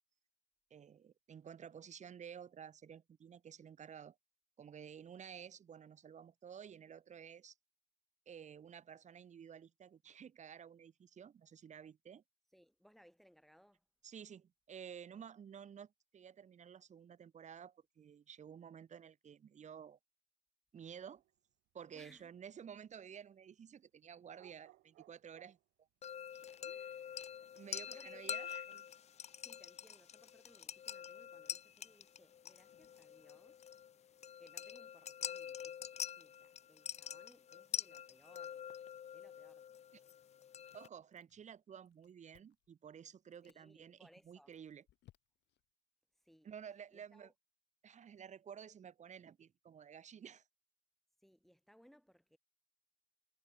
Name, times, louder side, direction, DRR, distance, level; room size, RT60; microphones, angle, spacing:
voice 1, 0.7-4.2 4.6-7.5 8.3-12.2 14.0-20.0 20.7-21.2 21.7-25.6 26.3-26.5 27.5-28.6 40.7-44.8 46.4-47.3 47.8-50.4, right 8 dB, 40° right, 1.1 m, -53 dB
voice 2, 12.5-13.9 21.9-22.3 26.6-28.9 29.4-33.7 34.0-34.1 34.4-38.7 39.1-39.7 43.4-44.6 46.2-46.5 46.9-47.3 51.2-52.4, equal, ahead, 2.3 m, -66 dB
sound 1, 20.9-21.4 21.7-21.8 24.1-25.7, right 16 dB, 80° right, 1.2 m, -64 dB
sound 2, 26.0-40.9, left 9 dB, 35° left, 0.5 m, -46 dB
Chewing mastication, 40.7-41.6 41.9-42.7 43.2-43.6 44.2-45.7, left 14 dB, 75° left, 1.9 m, -68 dB
cardioid pair, 100°, 18 cm